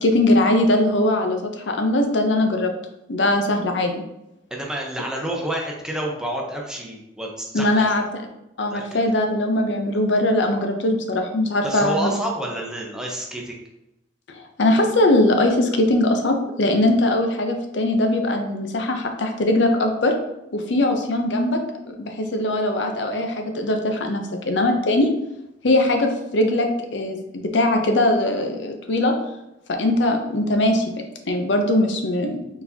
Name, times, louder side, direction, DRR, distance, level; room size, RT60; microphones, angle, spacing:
voice 1, 0.0-2.7 3.1-4.0 7.5-8.0 8.6-12.1 14.3-20.1 20.5-25.1 25.6-29.1 29.7-30.9 31.3-32.4, left 1 dB, 75° left, 4 dB, 0.6 m, -21 dB
voice 2, 4.5-7.9 8.7-9.0 11.6-13.6, right 1 dB, 5° right, -1 dB, 0.7 m, -29 dB
4.4 x 4.0 x 2.8 m, 0.90 s
head